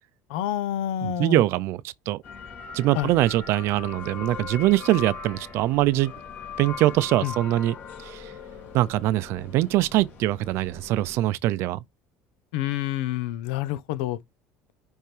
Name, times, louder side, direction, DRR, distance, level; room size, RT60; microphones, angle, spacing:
voice 1, 0.3-1.4 2.9-3.1 7.2-7.3 12.5-14.2, left 12 dB, 90° left, 0.8 m, -28 dB
voice 2, 1.0-2.2 2.7-6.1 6.6-8.3 8.7-11.8, right 15 dB, 60° right, 0.5 m, -23 dB
sound 1, 2.2-11.2, left 6 dB, 45° left, 2.8 m, -40 dB
10.5 x 3.6 x 3.3 m
cardioid pair, 130°, 5 cm